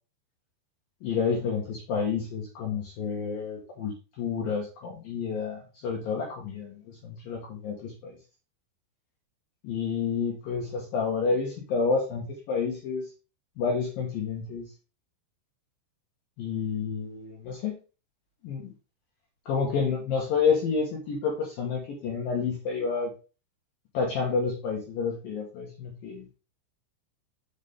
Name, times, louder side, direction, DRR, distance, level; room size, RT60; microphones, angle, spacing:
voice 1, 1.0-8.1 9.6-13.0 13.6-14.7 16.4-17.7 18.4-18.7 19.5-23.1 23.9-26.2, left 5 dB, 65° left, -1 dB, 2.6 m, -29 dB
6.6 x 6.5 x 3.3 m, 0.32 s
omnidirectional pair, 5.4 m